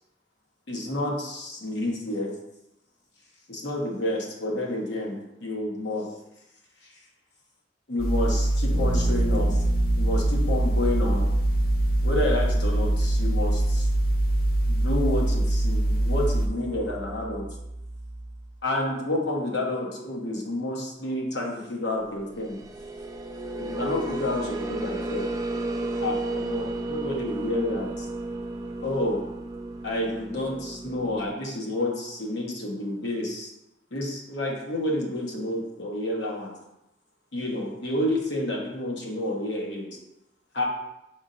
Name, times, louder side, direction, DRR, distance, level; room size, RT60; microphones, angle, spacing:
voice 1, 0.7-2.3 3.5-6.1 7.9-9.6 10.0-11.3 12.0-13.9 14.7-17.5 18.6-22.6 23.6-25.3 26.0-28.0 28.8-29.2 29.8-33.5 33.9-36.5 37.3-39.9 40.5-40.6, left 1 dB, 90° left, -2 dB, 1.0 m, -29 dB
sound 1, 8.0-16.5, right 1 dB, 55° left, 0.5 m, -23 dB
Bass guitar, 8.7-18.5, right 2 dB, 45° right, 0.8 m, -33 dB
sound 2, 22.3-31.3, right 2 dB, 20° right, 0.3 m, -33 dB
5.4 x 3.5 x 2.5 m, 0.88 s
head